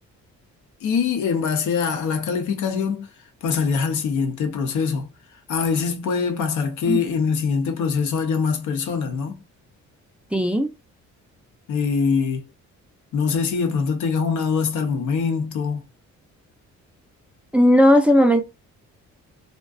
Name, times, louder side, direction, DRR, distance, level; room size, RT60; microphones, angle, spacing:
voice 1, 0.8-3.1 3.4-5.1 5.5-9.4 11.7-12.5 13.1-15.8, left 5 dB, 75° left, 0.7 m, -23 dB
voice 2, 10.3-10.7 17.5-18.4, equal, 5° right, 0.4 m, -16 dB
2.5 x 2.1 x 2.3 m
cardioid pair, 90°, 30 cm